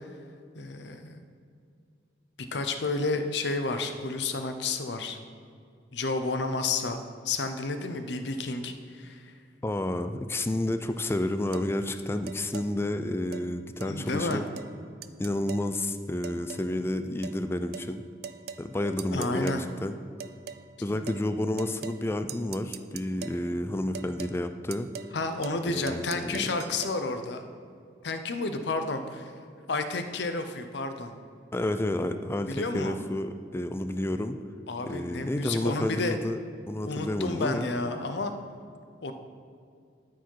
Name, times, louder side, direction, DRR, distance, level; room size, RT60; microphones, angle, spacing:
voice 1, 0.6-1.2 2.5-5.2 5.9-9.2 13.9-14.4 18.8-19.6 20.8-21.0 25.1-27.4 28.0-29.3 29.7-31.1 32.5-33.0 34.7-36.2 36.9-38.3 39.0-39.1, left 3 dB, 75° left, 8 dB, 0.7 m, -31 dB
voice 2, 9.6-14.4 15.2-18.0 18.6-20.0 20.8-24.9 25.6-26.5 31.5-34.4 34.9-36.4 36.7-37.7, left 1 dB, 15° left, 9 dB, 0.4 m, -30 dB
sound 1, 11.5-11.7 12.3-12.7 13.3-13.5 13.8-13.9 14.3-14.7 15.0-15.7 16.2-16.7 17.2-17.4 17.7-17.9 18.2-18.7 19.0-19.6 20.2-20.6 21.1-21.2 21.6-22.0 22.3-23.4 23.9-24.4 24.7-25.2 25.4-25.6 25.9-27.0, right 7 dB, 60° right, 0.4 m, -41 dB
12.5 x 4.8 x 4.6 m, 2.3 s
head